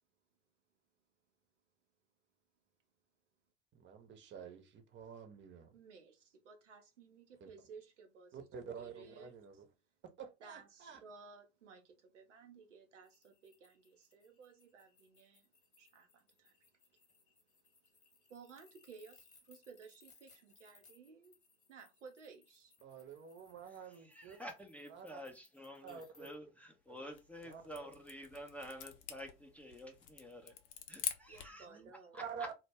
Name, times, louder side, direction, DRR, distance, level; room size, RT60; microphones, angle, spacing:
voice 1, 3.7-5.7 7.4-7.5 8.3-9.6 10.2-11.0 22.8-24.4 24.9-25.2 25.8-26.3 26.9-27.0 27.5-27.9 31.7-31.9 32.3-32.5, right 6 dB, 30° right, 0.7 m, -49 dB
voice 2, 5.7-8.5 8.8-9.6 10.4-15.5 15.7-17.3 18.3-21.4 21.7-22.7 31.3-32.2, right 5 dB, 90° right, 0.7 m, -57 dB
sound 1, 13.0-26.3, left 5 dB, 20° left, 1.0 m, -68 dB
voice 3, 23.6-31.8 32.1-32.5, equal, 5° left, 0.5 m, -50 dB
sound 2, 27.0-31.6, left 9 dB, 75° left, 0.6 m, -46 dB
2.2 x 2.0 x 3.3 m
hypercardioid pair, 80°, 35 cm